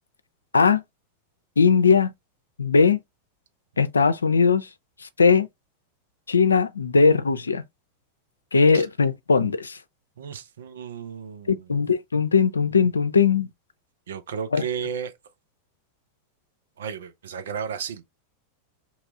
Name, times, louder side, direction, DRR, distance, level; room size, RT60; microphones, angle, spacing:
voice 1, 1.6-2.1 2.6-3.0 3.8-4.7 5.2-5.5 6.3-7.6 8.5-9.8 11.5-13.5 14.5-14.6, left 5 dB, 90° left, 0.4 m, -19 dB
voice 2, 10.2-11.7 14.1-15.1 16.8-18.0, right 7 dB, 75° right, 0.7 m, -33 dB
2.9 x 2.3 x 4.0 m
hypercardioid pair, 95°, 0 cm